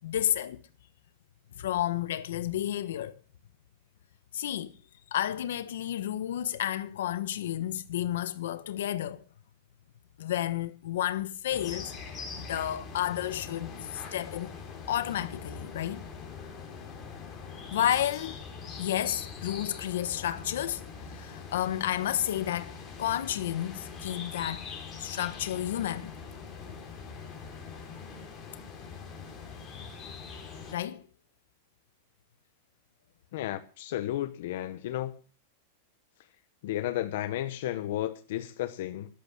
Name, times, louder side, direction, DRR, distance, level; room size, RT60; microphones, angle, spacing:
voice 1, 0.0-0.6 1.6-3.2 4.3-4.7 5.1-9.2 10.2-11.9 12.4-14.5 14.9-16.0 17.7-18.4 18.8-24.6 25.0-26.1 30.7-31.0, left 11 dB, 70° left, 1.3 m, -31 dB
sound 1, 11.5-30.7, left 5 dB, 15° left, 3.9 m, -43 dB
voice 2, 33.3-35.2 36.6-39.1, left 13 dB, 55° left, 1.0 m, -33 dB
14.0 x 12.0 x 6.1 m
supercardioid pair, 180°, 0 cm